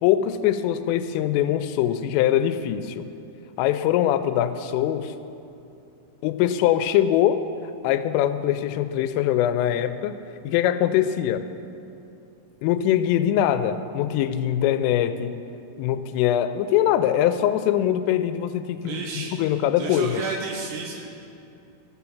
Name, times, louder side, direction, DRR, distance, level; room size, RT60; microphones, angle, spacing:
voice 1, 0.0-3.1 3.6-5.1 6.2-7.4 7.8-10.2 10.4-11.4 12.6-15.4 15.8-19.0 19.4-20.2, left 11 dB, 85° left, 11 dB, 3.1 m, -22 dB
voice 2, 18.8-19.4 19.8-21.2, right 5 dB, 80° right, 1 dB, 2.6 m, -32 dB
14.0 x 5.9 x 7.0 m, 2.8 s
omnidirectional pair, 5.7 m